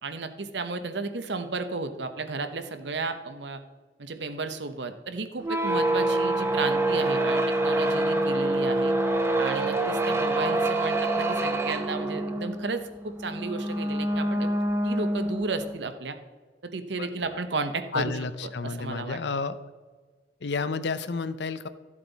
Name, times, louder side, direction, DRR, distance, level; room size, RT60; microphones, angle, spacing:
voice 1, 0.0-3.6 4.0-8.9 9.4-14.5 14.8-16.2 16.7-18.1 18.4-19.2, right 3 dB, 70° right, 8 dB, 0.9 m, -33 dB
sound 1, 5.4-15.7, right 1 dB, 15° right, 0.9 m, -26 dB
voice 2, 17.9-19.6 20.4-21.7, left 4 dB, 70° left, 13 dB, 0.6 m, -30 dB
13.5 x 7.5 x 4.0 m, 1.4 s
head